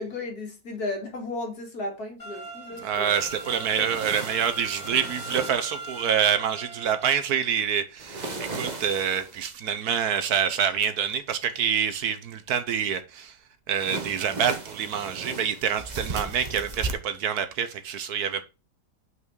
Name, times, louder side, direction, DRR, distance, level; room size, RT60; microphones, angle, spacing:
voice 1, 0.0-3.2 3.8-3.9, left 2 dB, 60° left, 2.4 m, -34 dB
sound 1, 2.2-7.2, right 1 dB, 10° left, 2.4 m, -40 dB
voice 2, 2.8-13.3 13.7-18.4, right 8 dB, 65° right, 1.2 m, -26 dB
sound 2, 2.9-6.0 8.0-9.5 13.8-16.9, right 3 dB, 30° right, 0.9 m, -36 dB
5.7 x 4.7 x 6.0 m
omnidirectional pair, 1.9 m